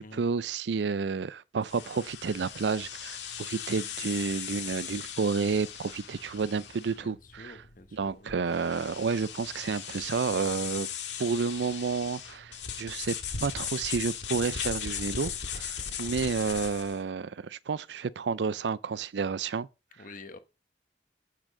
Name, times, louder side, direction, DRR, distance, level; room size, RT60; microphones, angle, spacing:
voice 1, 0.0-7.5 7.9-10.9 11.2-13.2 13.4-19.7, right 5 dB, 75° right, 0.4 m, -30 dB
sound 1, 1.6-17.0, left 8 dB, 85° left, 1.7 m, -38 dB
voice 2, 6.9-8.4 16.1-16.4 19.9-20.4, left 2 dB, 50° left, 1.2 m, -49 dB
8.4 x 6.3 x 4.9 m
head